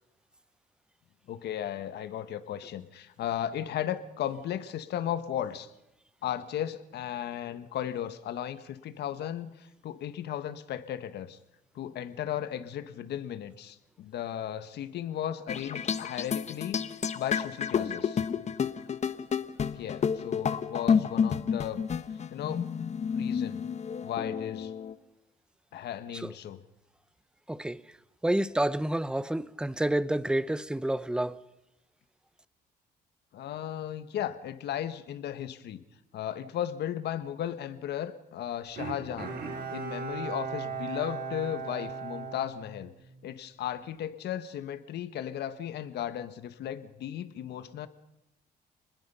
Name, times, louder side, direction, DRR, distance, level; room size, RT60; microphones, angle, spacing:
voice 1, 1.3-5.7 6.2-11.4 11.7-18.2 19.7-21.8 22.3-22.7 23.1-23.6 24.0-24.7 25.7-26.6 33.3-35.8 36.1-39.3 39.7-42.9 43.2-47.9, left 10 dB, 75° left, 1.5 m, -35 dB
sound 1, 15.5-24.9, left 7 dB, 40° left, 1.2 m, -30 dB
voice 2, 27.5-27.8 28.2-31.4, right 1 dB, 5° right, 0.7 m, -29 dB
Bowed string instrument, 38.8-43.3 43.7-43.8, right 5 dB, 65° right, 4.9 m, -37 dB
29.0 x 20.5 x 5.6 m
cardioid pair, 110°, 17 cm